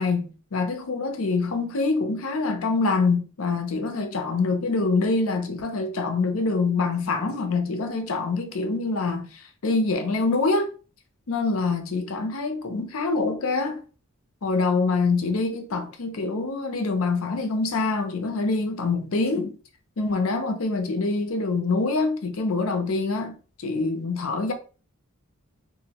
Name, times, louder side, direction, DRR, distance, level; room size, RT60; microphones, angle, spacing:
voice 1, 0.0-10.7 11.3-13.8 14.4-19.5 20.0-24.5, left 3 dB, 75° left, 0.6 m, -25 dB
2.9 x 2.6 x 2.9 m
head